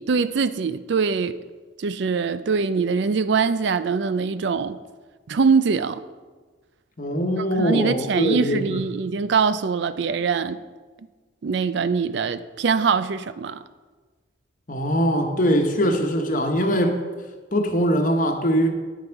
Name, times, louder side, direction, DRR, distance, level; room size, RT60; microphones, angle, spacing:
voice 1, 0.0-1.4 1.8-4.8 5.3-6.0 7.4-10.6 11.4-13.6, right 5 dB, 65° right, 0.4 m, -23 dB
voice 2, 7.0-8.8 14.7-17.0 17.5-18.7, equal, 40° left, 1.1 m, -22 dB
9.9 x 8.8 x 4.6 m
head